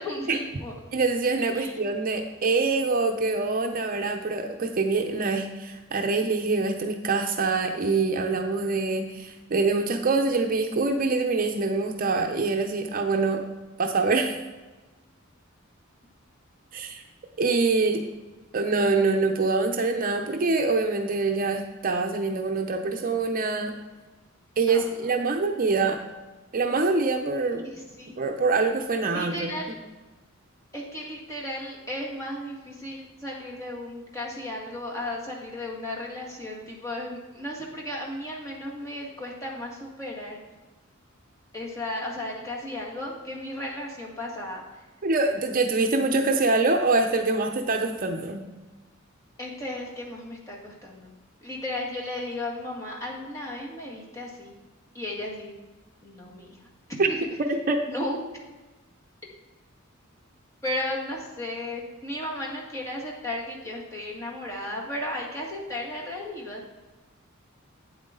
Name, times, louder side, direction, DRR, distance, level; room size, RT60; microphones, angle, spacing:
voice 1, 0.0-0.7 1.5-1.7 24.7-24.9 27.5-28.1 29.1-29.8 30.7-40.4 41.5-44.8 49.4-51.1 51.4-54.5 54.9-55.6 56.0-56.6 57.1-57.4 57.9-58.2 60.6-66.6, left 1 dB, 15° left, -3 dB, 1.8 m, -35 dB
voice 2, 0.9-13.4 13.8-14.4 16.7-17.0 17.4-18.0 18.5-23.7 24.6-26.0 26.5-27.7 28.2-29.5 45.0-48.5 57.0-57.1 57.5-57.8, right 3 dB, 45° right, 4 dB, 0.6 m, -25 dB
8.7 x 7.9 x 3.8 m, 1.2 s
head